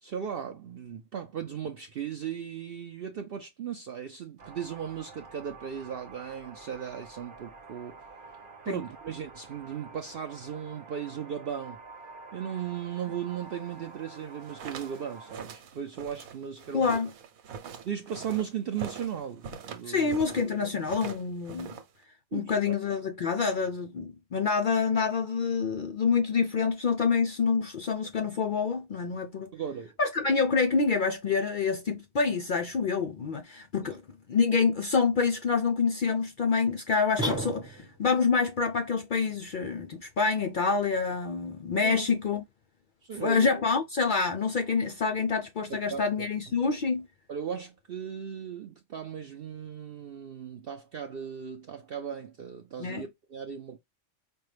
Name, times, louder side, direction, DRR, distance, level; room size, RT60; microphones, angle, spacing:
voice 1, 0.0-8.0 8.7-11.8 12.3-16.9 17.8-20.2 20.6-20.8 22.3-22.8 29.5-29.9 33.8-34.0 41.8-42.1 43.0-43.6 45.9-46.1 47.3-53.8, right 8 dB, 60° right, 0.6 m, -37 dB
sound 1, 4.4-15.4, right 4 dB, 45° right, 0.9 m, -48 dB
sound 2, 14.3-20.5 20.8-22.0, right 7 dB, 85° right, 1.2 m, -43 dB
voice 2, 16.7-17.1 19.8-21.8 22.3-29.5 30.0-34.0 34.3-42.4 43.2-47.1 52.8-53.1, left 5 dB, 70° left, 0.4 m, -27 dB
sound 3, 37.2-38.1, equal, 5° right, 1.1 m, -32 dB
5.3 x 2.3 x 3.2 m
omnidirectional pair, 1.4 m